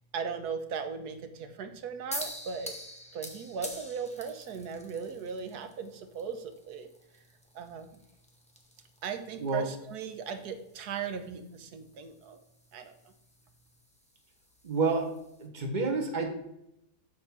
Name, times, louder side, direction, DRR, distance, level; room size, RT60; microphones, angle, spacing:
voice 1, 0.1-2.7 3.1-7.2 7.5-8.0 9.0-12.4 12.7-13.1, right 6 dB, 80° right, 8 dB, 1.3 m, -38 dB
sound 1, 2.1-15.5, equal, 5° left, 0.7 m, -47 dB
voice 2, 14.6-15.1 15.4-16.3, right 4 dB, 30° right, 3 dB, 1.2 m, -29 dB
6.7 x 4.3 x 5.8 m, 0.82 s
omnidirectional pair, 1.7 m